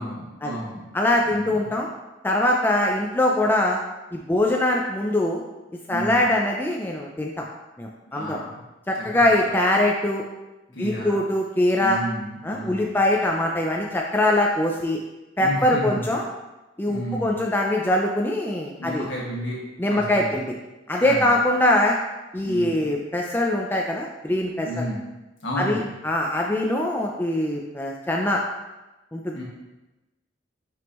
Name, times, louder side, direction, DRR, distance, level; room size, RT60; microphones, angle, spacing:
voice 1, 0.0-0.9 1.2-1.7 5.9-6.2 8.1-8.6 9.2-9.5 10.7-11.2 11.7-12.9 15.4-16.0 16.9-17.4 18.8-19.6 19.9-20.4 21.0-21.3 22.4-22.9 24.6-25.0 25.4-25.9 29.3-29.4, equal, 65° left, -4 dB, 1.7 m, -32 dB
voice 2, 0.9-1.9 2.2-3.8 4.1-5.4 5.9-7.5 7.8-8.4 8.9-10.2 10.8-12.0 12.4-15.0 15.4-16.2 16.8-19.1 19.8-20.5 20.9-22.0 22.3-24.8 25.6-28.4 29.1-29.4, left 1 dB, 10° left, -1 dB, 0.4 m, -22 dB
6.1 x 5.2 x 3.0 m, 1.1 s
head